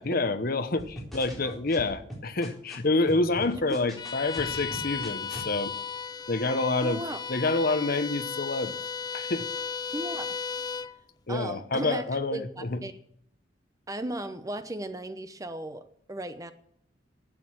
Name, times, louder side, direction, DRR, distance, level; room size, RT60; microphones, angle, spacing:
voice 1, 0.0-5.7 6.3-7.0 7.3-8.7 9.1-9.5 11.3-12.8, left 2 dB, 50° left, 11 dB, 1.0 m, -28 dB
sound 1, 0.8-2.7 3.1-5.5, equal, ahead, 3.9 m, -41 dB
Bowed string instrument, 4.0-11.0, left 5 dB, 20° left, 0.4 m, -35 dB
voice 2, 6.8-7.2 9.9-10.4 11.3-12.0 12.3-13.0 13.9-16.5, right 1 dB, 20° right, 10 dB, 0.8 m, -36 dB
12.0 x 8.3 x 7.3 m, 0.70 s
head